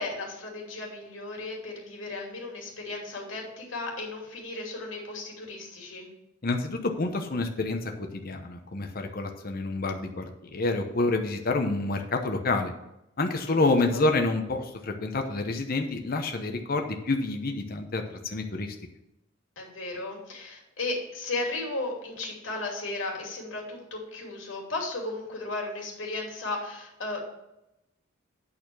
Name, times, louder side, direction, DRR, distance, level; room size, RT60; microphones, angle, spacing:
voice 1, 0.0-6.1 13.5-13.7 13.9-14.0 19.6-27.2, left 2 dB, 75° left, -1 dB, 2.8 m, -35 dB
voice 2, 6.4-12.7 13.2-18.7, left 2 dB, 50° left, 5 dB, 0.9 m, -28 dB
8.8 x 4.3 x 6.9 m, 0.89 s
head